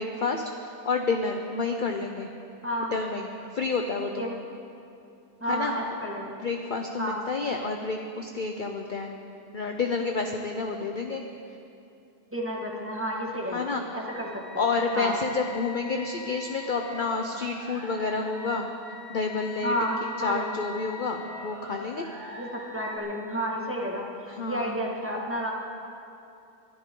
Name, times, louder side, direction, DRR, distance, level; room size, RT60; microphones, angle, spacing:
voice 1, 0.0-2.3 2.9-3.3 3.5-4.3 5.4-5.7 6.4-9.2 9.5-11.2 13.5-14.0 14.6-18.7 19.1-19.7 20.0-22.1 24.3-24.8, left 4 dB, 50° left, 3 dB, 0.6 m, -29 dB
voice 2, 2.6-2.9 4.0-4.4 5.4-6.3 7.0-7.2 12.3-14.3 14.5-14.7 14.9-15.1 19.6-20.5 22.3-25.5, equal, 10° right, -3 dB, 1.7 m, -31 dB
sound 1, 14.1-23.0, left 3 dB, 75° right, 2.9 m, -43 dB
22.5 x 13.5 x 3.8 m, 2.7 s
omnidirectional pair, 1.7 m